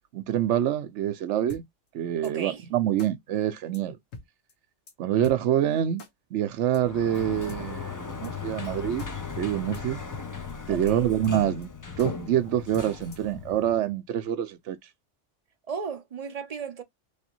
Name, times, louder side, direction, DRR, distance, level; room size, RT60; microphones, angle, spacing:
voice 1, 0.1-1.6 1.9-4.0 5.0-6.0 6.3-9.1 9.4-10.0 10.7-11.7 12.0-14.8, right 11 dB, 70° right, 0.9 m, -26 dB
sound 1, 1.5-1.6 2.2-2.3 3.0-3.1 3.7-3.8 4.1-4.2 4.5-4.6 4.9-5.0 5.2-5.4 6.0-6.1 6.7-6.8 7.5-7.6 8.2-8.3 8.6-8.7 9.0-9.1 9.4-9.5 9.7-9.8 10.1-10.2 10.5-10.6 10.9-11.0 11.2-11.7 12.0-12.1 12.7-13.3, left 3 dB, 85° left, 1.5 m, -43 dB
voice 2, 2.2-2.6 10.7-11.0 15.7-16.8, right 6 dB, 40° right, 0.6 m, -35 dB
Sliding door, 6.7-13.9, left 5 dB, 25° left, 0.4 m, -37 dB
3.3 x 3.1 x 2.8 m
omnidirectional pair, 1.3 m